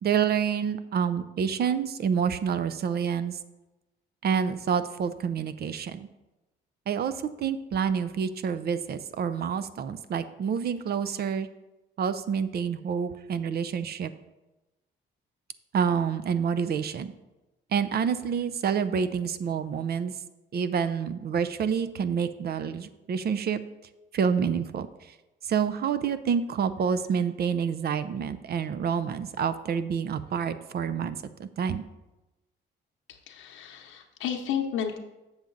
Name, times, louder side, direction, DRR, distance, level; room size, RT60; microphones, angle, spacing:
voice 1, 0.0-3.4 4.2-6.1 6.9-11.5 12.0-14.1 15.7-17.1 17.7-20.1 20.5-23.6 24.1-24.9 25.4-31.8, right 7 dB, 55° right, 13 dB, 0.5 m, -28 dB
voice 2, 33.3-35.0, left 8 dB, 85° left, 3 dB, 0.8 m, -32 dB
7.3 x 7.0 x 3.9 m, 1.0 s
cardioid pair, 90°, 20 cm